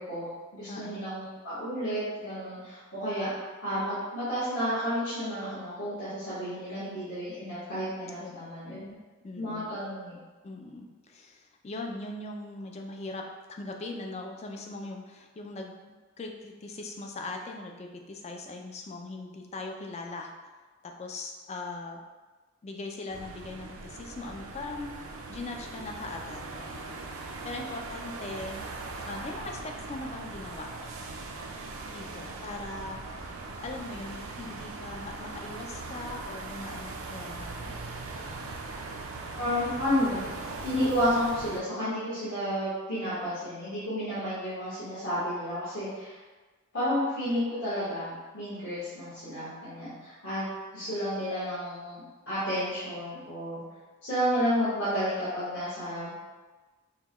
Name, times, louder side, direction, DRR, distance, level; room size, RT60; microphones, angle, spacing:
voice 1, 0.0-3.3 3.6-8.8 9.3-10.1 39.3-40.3 40.6-46.2 46.7-50.4 50.7-53.6 54.0-56.1, equal, 60° left, -14 dB, 1.4 m, -31 dB
voice 2, 0.7-1.0 8.2-8.3 8.7-9.0 9.2-9.7 10.4-20.3 20.8-22.0 22.6-28.6 29.1-30.9 31.9-37.7, left 2 dB, 30° left, 2 dB, 0.4 m, -40 dB
sound 1, 23.1-41.6, right 3 dB, 75° right, 0.5 m, -40 dB
5.6 x 2.2 x 3.0 m, 1.3 s
head